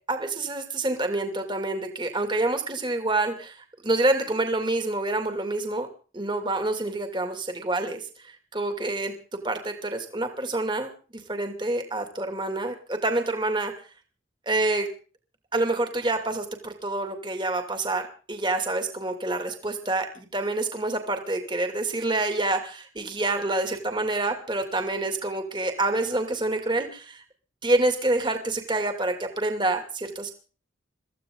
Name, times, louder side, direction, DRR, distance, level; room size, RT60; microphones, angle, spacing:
voice 1, 0.1-5.9 6.1-9.1 9.4-10.9 11.3-13.7 14.5-14.9 15.5-27.2 27.6-30.3, right 2 dB, 25° right, 5 dB, 2.6 m, -27 dB
23.5 x 15.0 x 3.9 m, 0.38 s
head